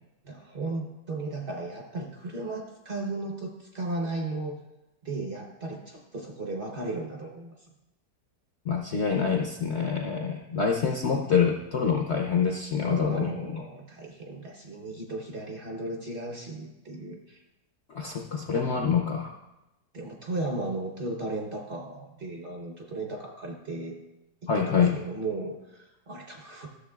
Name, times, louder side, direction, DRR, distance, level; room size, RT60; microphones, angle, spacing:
voice 1, 0.2-4.6 5.0-7.5 12.8-17.4 19.9-24.0 24.4-26.7, right 2 dB, 40° right, 1 dB, 0.8 m, -35 dB
voice 2, 8.7-13.6 17.9-19.3 24.5-25.0, left 6 dB, 65° left, 2 dB, 0.7 m, -26 dB
13.0 x 6.8 x 2.3 m, 0.95 s
omnidirectional pair, 1.8 m